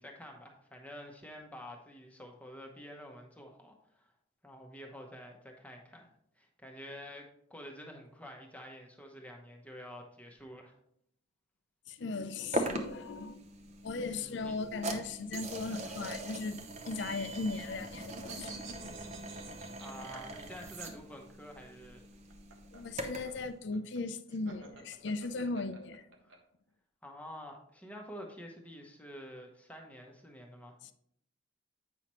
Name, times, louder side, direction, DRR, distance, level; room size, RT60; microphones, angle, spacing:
voice 1, 0.0-4.1 4.4-6.1 6.4-10.8 14.0-14.6 19.8-22.0 26.2-26.4 27.0-30.8, equal, 5° left, 0.9 m, -49 dB
voice 2, 11.9-13.5 13.8-16.6 16.9-18.5 22.7-26.0, left 3 dB, 60° left, 0.5 m, -37 dB
sound 1, 12.5-23.4, right 1 dB, 35° right, 0.7 m, -41 dB
sound 2, 16.9-20.9 22.1-26.4, right 3 dB, 70° right, 1.1 m, -51 dB
8.6 x 5.7 x 3.1 m
head